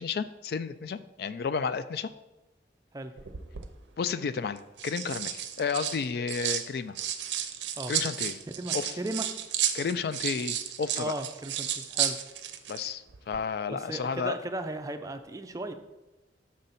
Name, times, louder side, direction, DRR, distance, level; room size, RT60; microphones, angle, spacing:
voice 1, 0.0-2.1 4.0-7.0 7.9-8.4 8.7-9.0 9.7-11.1 12.7-14.4, left 5 dB, 60° left, 13 dB, 0.3 m, -32 dB
sound 1, 3.2-3.7 4.6-6.7 6.9-12.8 13.1-13.4, right 10 dB, 85° right, 0.6 m, -32 dB
voice 2, 8.6-9.3 11.0-12.2 13.7-15.7, right 1 dB, 20° right, 7 dB, 0.4 m, -36 dB
6.2 x 4.0 x 5.7 m, 1.0 s
head